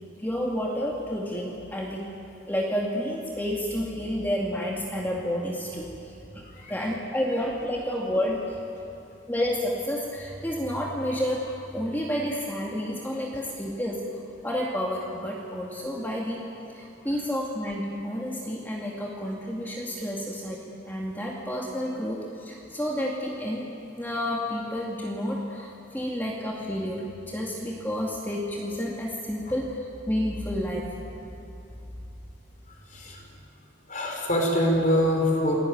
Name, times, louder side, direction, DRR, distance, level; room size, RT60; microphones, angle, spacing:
voice 1, 0.2-2.1 2.5-6.4 6.7-8.6 9.3-14.0 14.4-16.5 16.7-23.7 24.0-30.9, equal, 10° left, -3 dB, 2.3 m, -30 dB
voice 2, 32.7-33.2 33.9-35.6, equal, 40° left, 0 dB, 4.8 m, -25 dB
28.5 x 20.0 x 9.5 m, 2.8 s
head